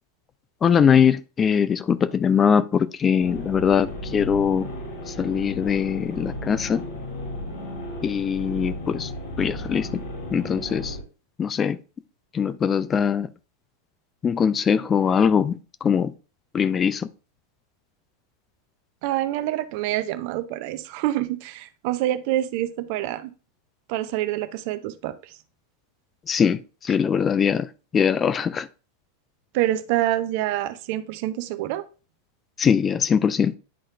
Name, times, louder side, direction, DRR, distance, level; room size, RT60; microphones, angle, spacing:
voice 1, 0.6-4.7 5.1-6.8 8.0-9.1 9.4-10.0 10.3-11.0 11.4-11.8 12.3-13.3 14.2-16.1 16.5-17.1 26.3-28.7 32.6-33.5, left 7 dB, 20° left, 0.3 m, -22 dB
sound 1, 3.2-11.0, left 1 dB, 55° left, 2.9 m, -34 dB
voice 2, 19.0-23.3 23.9-25.3 29.5-31.8, right 14 dB, 45° right, 0.5 m, -26 dB
10.5 x 4.2 x 2.4 m
figure-of-eight pair, 90°, 0 cm